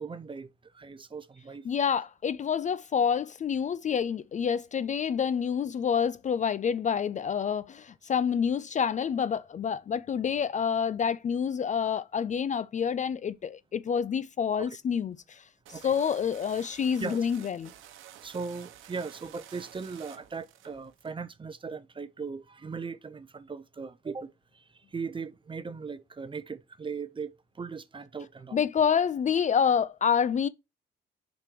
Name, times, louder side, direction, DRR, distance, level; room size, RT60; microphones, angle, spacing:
voice 1, 0.0-1.7 14.6-14.8 15.7-15.9 17.0-17.5 18.2-28.7, right 5 dB, 25° right, 0.7 m, -39 dB
voice 2, 1.7-15.4 15.7-17.7 28.5-30.5, left 7 dB, 40° left, 0.4 m, -28 dB
sound 1, 15.7-21.1, right 11 dB, 85° right, 0.9 m, -51 dB
5.2 x 4.4 x 6.0 m
cardioid pair, 90°, 20 cm